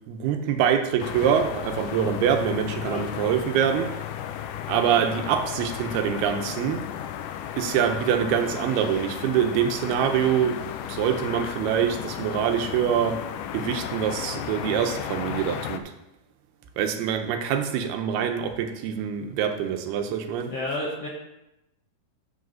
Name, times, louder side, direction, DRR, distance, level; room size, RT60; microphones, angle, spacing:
voice 1, 0.1-4.0 4.7-6.8 7.6-10.6 10.9-13.2 13.5-15.8 16.8-20.5, right 8 dB, 85° right, 6 dB, 2.8 m, -25 dB
sound 1, 1.0-15.8, left 10 dB, 85° left, 1.8 m, -34 dB
voice 2, 20.5-21.1, left 2 dB, 65° left, -4 dB, 1.5 m, -30 dB
8.9 x 4.9 x 6.2 m, 0.91 s
omnidirectional pair, 4.4 m